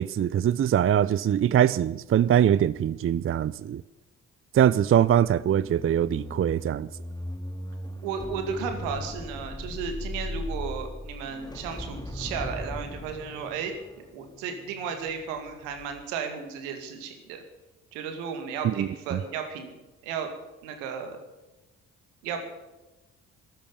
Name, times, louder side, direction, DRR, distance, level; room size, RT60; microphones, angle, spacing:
voice 1, 0.0-3.8 4.5-6.9 18.6-19.2, right 10 dB, 35° right, 0.5 m, -23 dB
sound 1, 5.2-15.4 15.7-16.0, left 1 dB, 10° left, 2.1 m, -38 dB
voice 2, 8.0-13.7 14.1-17.4 17.9-19.7 20.0-20.3 20.6-21.2 22.2-22.4, right 6 dB, 80° right, 2.3 m, -34 dB
13.5 x 13.0 x 7.2 m
figure-of-eight pair, 40°, 38 cm